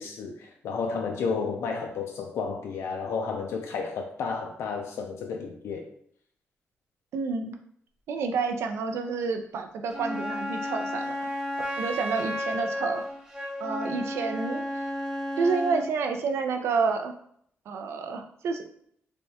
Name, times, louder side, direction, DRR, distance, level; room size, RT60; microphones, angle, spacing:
voice 1, 0.0-5.9, left 5 dB, 80° left, 0.4 m, -32 dB
voice 2, 7.1-7.5 8.1-11.3 11.8-13.0 13.6-14.8 15.4-17.1 17.7-18.6, right 4 dB, 75° right, 0.5 m, -29 dB
Wind instrument woodwind instrument, 9.9-15.9, left 1 dB, 15° right, 0.5 m, -33 dB
3.4 x 3.4 x 2.7 m
wide cardioid pair, 180°, 5 cm